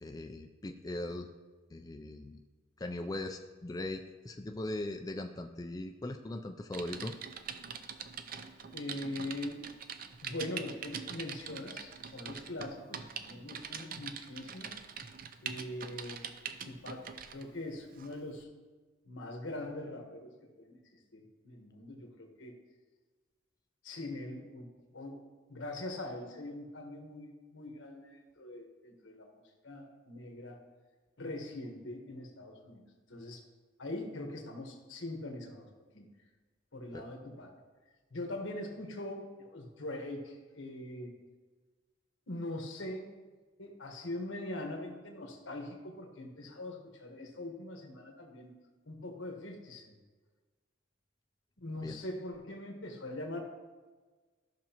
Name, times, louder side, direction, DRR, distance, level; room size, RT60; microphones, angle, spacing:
voice 1, 0.0-1.3 1.7-2.4 2.8-7.2 36.9-37.0 51.8-52.0, left 1 dB, 20° left, 5 dB, 0.3 m, -40 dB
Typing, 6.7-17.4 18.0-18.2, right 7 dB, 45° right, 0.5 m, -43 dB
voice 2, 8.7-9.6 10.2-14.7 15.4-16.2 16.6-18.5 19.0-20.8 21.1-22.6 23.8-24.7 24.9-25.2 25.5-30.6 31.2-32.8 33.1-33.4 33.8-35.7 35.9-36.1 36.7-37.5 38.1-41.1 42.3-43.1 43.6-48.5 48.9-50.0 51.6-53.4, left 1 dB, 80° left, 3 dB, 1.4 m, -42 dB
13.5 x 6.0 x 2.9 m, 1.4 s
head